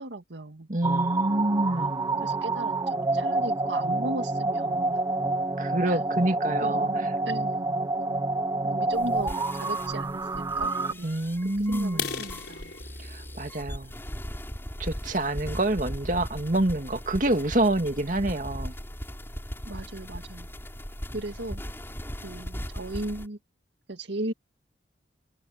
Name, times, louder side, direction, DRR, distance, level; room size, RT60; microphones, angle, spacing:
voice 1, 0.0-0.7 1.7-1.9 2.2-5.0 5.9-6.0 6.6-8.3 8.6-12.7 19.7-20.5 21.1-21.6 22.2-23.4 23.9-24.3, right 2 dB, 80° right, 1.9 m, -37 dB
voice 2, 0.7-2.2 5.6-7.1 11.0-12.2 13.0-13.9 14.8-18.7, right 1 dB, 45° right, 2.1 m, -27 dB
sound 1, 0.8-10.9, right 2 dB, 20° right, 0.4 m, -28 dB
sound 2, 8.9-23.3, equal, 15° left, 6.8 m, -38 dB
sound 3, 11.9-15.6 16.2-16.4 16.8-16.9 17.3-17.5 17.8-17.9 18.4-18.5 18.7-19.2, left 6 dB, 60° left, 5.6 m, -39 dB
head